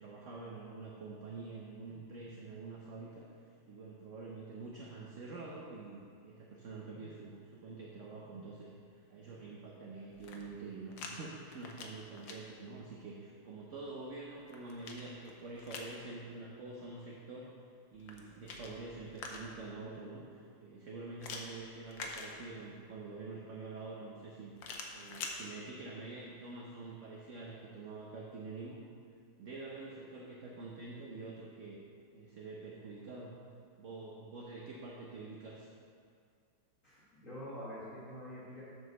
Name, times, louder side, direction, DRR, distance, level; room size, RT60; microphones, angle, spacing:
voice 1, 0.0-3.3 3.7-17.5 17.9-24.5 24.9-28.8 29.4-31.8 32.1-33.4 33.8-35.7, right 3 dB, 55° right, -3 dB, 0.9 m, -46 dB
sound 1, 10.1-11.1 11.5-12.4 14.1-16.0 17.9-19.7 21.2-22.8 24.6-25.4, left 4 dB, 75° left, 1.5 m, -46 dB
voice 2, 36.8-38.6, equal, 40° left, -10 dB, 2.0 m, -46 dB
8.0 x 5.1 x 6.4 m, 2.2 s
omnidirectional pair, 2.1 m